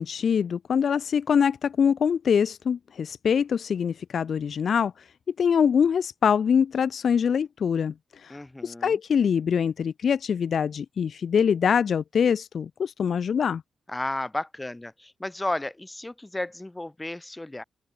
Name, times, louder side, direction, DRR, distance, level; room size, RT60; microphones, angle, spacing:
voice 1, 0.0-4.9 5.4-7.9 8.2-8.4 8.6-13.6, left 7 dB, 65° left, 0.6 m, -24 dB
voice 2, 8.3-9.0 13.9-17.6, left 1 dB, 15° left, 2.9 m, -33 dB
open air
cardioid pair, 65°, 0 cm